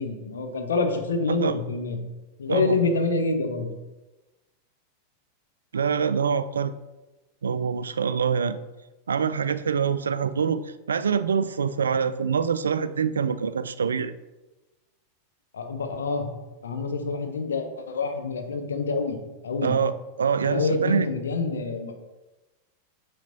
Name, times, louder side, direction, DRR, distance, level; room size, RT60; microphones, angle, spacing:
voice 1, 0.0-2.0 2.4-3.7 15.5-16.3 16.6-19.2 19.4-19.8 20.4-22.0, left 3 dB, 70° left, 5 dB, 0.9 m, -27 dB
voice 2, 5.7-6.7 7.4-8.6 9.1-14.1 19.6-19.9 20.2-21.1, right 6 dB, 70° right, 13 dB, 0.3 m, -25 dB
9.0 x 5.0 x 2.7 m, 1.1 s
figure-of-eight pair, 90°, 0 cm